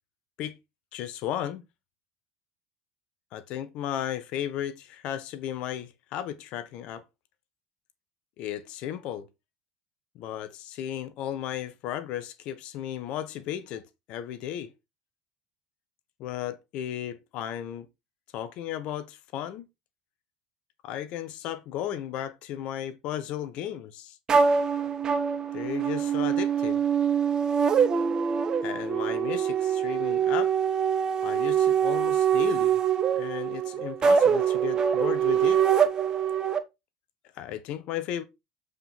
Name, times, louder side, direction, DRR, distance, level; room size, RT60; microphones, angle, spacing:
voice 1, 0.9-1.6 3.3-7.0 8.4-9.3 10.1-14.7 16.2-17.9 18.3-19.7 20.8-24.2 25.5-26.8 28.6-30.5 31.2-32.8 33.1-35.6 37.3-38.2, left 10 dB, 60° left, 1.0 m, -35 dB
sound 1, 24.3-36.6, right 7 dB, 35° right, 1.1 m, -24 dB
7.7 x 4.9 x 4.3 m
hypercardioid pair, 75°, 2 cm